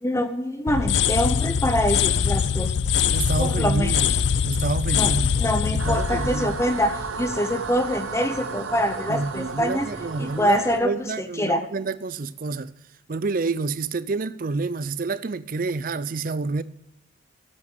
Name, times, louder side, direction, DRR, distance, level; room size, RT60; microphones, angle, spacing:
voice 1, 0.0-2.7 3.4-4.0 4.9-5.1 5.4-9.9 10.2-11.6, equal, 15° left, 0.7 m, -25 dB
sound 1, 0.7-7.5, left 7 dB, 60° left, 0.5 m, -23 dB
voice 2, 3.1-4.1 4.4-5.3 5.8-6.6 9.1-12.7 13.1-16.6, right 3 dB, 45° right, 0.5 m, -28 dB
sound 2, 5.8-10.8, right 5 dB, 85° right, 1.1 m, -33 dB
8.4 x 8.3 x 8.5 m
head